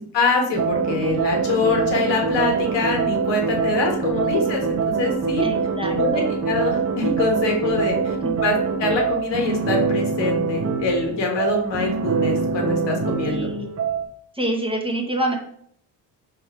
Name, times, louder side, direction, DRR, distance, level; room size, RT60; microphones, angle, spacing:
voice 1, 0.1-5.4 5.9-8.1 8.4-13.5, left 3 dB, 60° left, 1 dB, 1.4 m, -24 dB
sound 1, 0.5-14.0, right 5 dB, 30° right, 0.9 m, -24 dB
voice 2, 3.9-4.6 5.4-6.3 8.2-8.4 13.2-13.7 14.3-15.4, right 1 dB, 10° right, 1 dB, 1.1 m, -27 dB
3.6 x 3.0 x 4.7 m, 0.67 s
hypercardioid pair, 60°, 47 cm